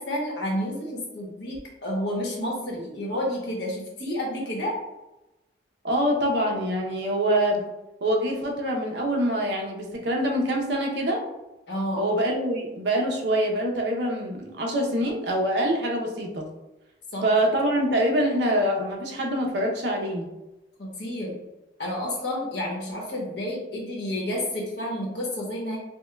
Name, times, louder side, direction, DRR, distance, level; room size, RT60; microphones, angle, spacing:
voice 1, 0.0-4.7 11.7-12.1 17.1-17.3 20.8-21.4 21.8-25.8, left 1 dB, 65° left, -2 dB, 1.0 m, -30 dB
voice 2, 5.8-7.6 8.0-11.2 12.0-16.5 17.2-20.3, equal, 65° right, 0 dB, 0.7 m, -25 dB
5.4 x 2.2 x 2.2 m, 0.99 s
head